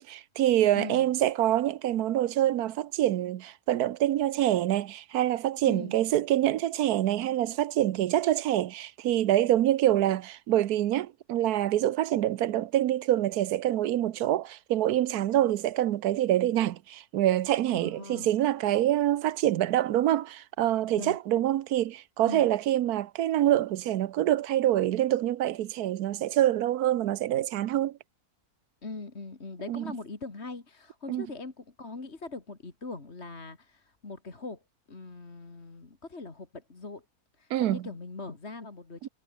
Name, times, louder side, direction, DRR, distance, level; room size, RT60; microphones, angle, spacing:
voice 1, 0.0-28.0 29.7-29.9 31.1-31.3 37.5-37.8 39.0-39.1, right 12 dB, 85° right, 1.3 m, -26 dB
voice 2, 0.7-1.1 5.7-6.0 17.7-18.3 21.0-21.2 22.3-22.5 28.8-34.6 34.9-37.0 37.4-39.1, left 3 dB, 45° left, 2.8 m, -41 dB
omnidirectional pair, 1.6 m